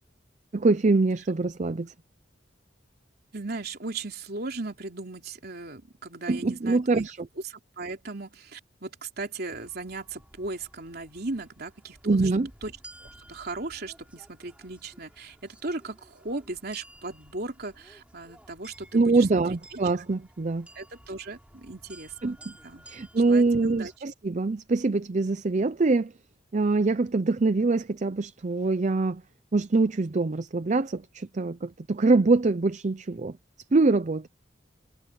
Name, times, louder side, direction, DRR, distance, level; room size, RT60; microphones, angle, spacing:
voice 1, 0.5-1.9 6.3-7.3 12.0-12.5 18.9-20.7 22.2-22.5 22.9-26.1 26.5-29.2 29.5-33.4 33.7-34.3, right 3 dB, 40° right, 0.5 m, -24 dB
voice 2, 3.3-7.1 7.4-12.3 12.6-12.7 13.0-19.8 20.7-22.4 22.6-22.9 23.1-23.9, right 3 dB, 55° right, 3.4 m, -37 dB
sound 1, 9.5-24.0, right 1 dB, 5° right, 3.2 m, -54 dB
head